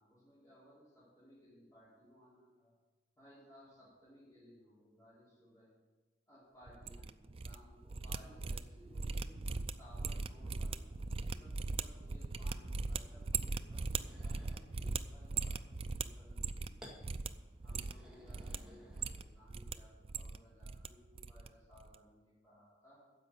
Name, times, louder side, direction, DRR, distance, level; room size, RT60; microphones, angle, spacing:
voice 1, 0.0-2.7 3.2-5.7 6.3-16.8 17.6-23.0, equal, 20° left, -12 dB, 4.4 m, -61 dB
sound 1, 6.7-7.6 7.8-16.8 17.0-17.3 17.6-18.6 18.9-19.7 20.0-20.9 21.2-21.5 21.7-22.0, right 4 dB, 35° right, 0.4 m, -39 dB
sound 2, 13.9-15.0 16.8-17.0 17.6-19.5, equal, 5° right, 1.9 m, -57 dB
10.0 x 7.5 x 8.5 m, 1.2 s
head